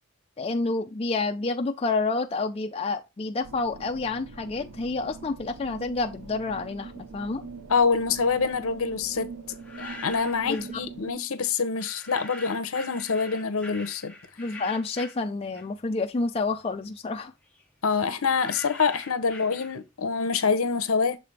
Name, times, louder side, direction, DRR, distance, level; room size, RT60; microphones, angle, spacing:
voice 1, 0.4-7.5 10.5-10.9 14.4-17.3, left 3 dB, 25° left, 0.3 m, -29 dB
sound 1, 3.4-11.1, right 4 dB, 80° right, 0.8 m, -43 dB
voice 2, 7.7-9.3 9.8-14.1 17.8-21.2, left 5 dB, 70° left, 0.7 m, -26 dB
sound 2, 9.5-10.8 11.7-16.0 16.3-20.1, left 3 dB, 5° left, 0.8 m, -44 dB
6.7 x 3.4 x 4.2 m
head